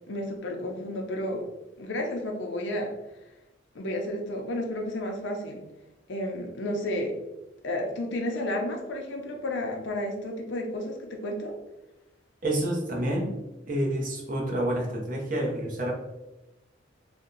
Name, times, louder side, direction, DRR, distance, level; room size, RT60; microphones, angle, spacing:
voice 1, 0.1-1.5 1.8-2.9 3.7-5.6 6.1-7.1 7.6-11.5, left 1 dB, 65° left, 2 dB, 0.6 m, -32 dB
voice 2, 12.4-13.3 13.7-15.9, right 1 dB, 45° right, -2 dB, 0.8 m, -28 dB
2.6 x 2.2 x 3.8 m, 1.0 s
head